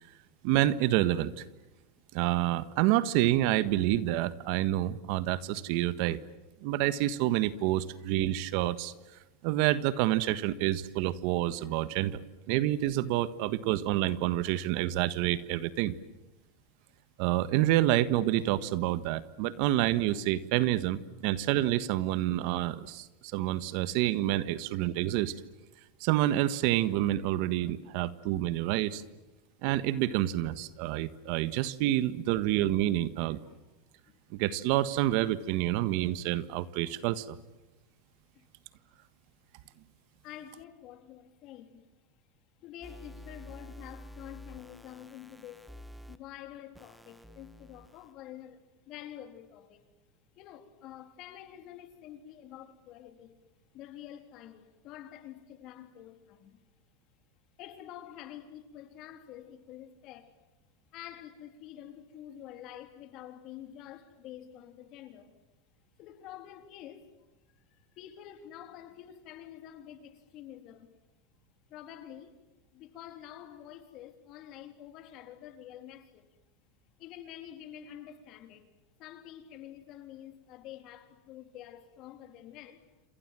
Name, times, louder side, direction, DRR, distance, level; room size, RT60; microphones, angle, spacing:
voice 1, 0.4-1.4 2.1-6.2 6.6-8.9 9.4-12.2 12.5-15.9 17.2-23.1 23.3-25.3 26.0-29.0 29.6-33.4 34.3-37.4, right 14 dB, 60° right, 1.4 m, -28 dB
voice 2, 40.2-41.9 42.6-45.7 46.1-48.6 48.9-49.8 50.4-53.4 53.7-56.6 57.6-60.3 60.9-65.3 66.0-67.1 67.7-70.9 71.7-72.4 72.7-76.3 77.0-78.7 79.0-82.8, left 11 dB, 45° left, 3.6 m, -48 dB
sound 1, 42.8-46.2 46.7-48.1, left 1 dB, ahead, 1.3 m, -49 dB
28.5 x 27.0 x 7.7 m
supercardioid pair, 130°, 0 cm